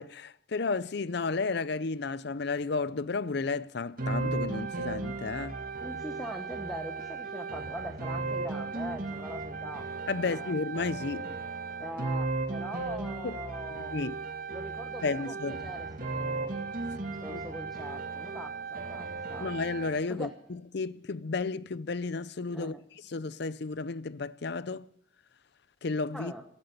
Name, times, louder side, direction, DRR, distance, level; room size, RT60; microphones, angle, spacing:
voice 1, 0.0-5.6 10.1-11.4 13.2-13.4 13.7-14.1 15.0-15.6 17.3-17.4 19.4-22.7 23.1-24.8 25.8-26.3, left 4 dB, 55° left, 0.5 m, -33 dB
sound 1, 4.0-20.0, right 3 dB, 45° right, 1.9 m, -36 dB
voice 2, 5.8-9.9 10.1-10.5 11.8-14.0 14.5-16.5 17.2-19.5 20.1-20.3 22.5-22.8 26.1-26.4, equal, ahead, 1.1 m, -42 dB
15.5 x 12.0 x 6.7 m
head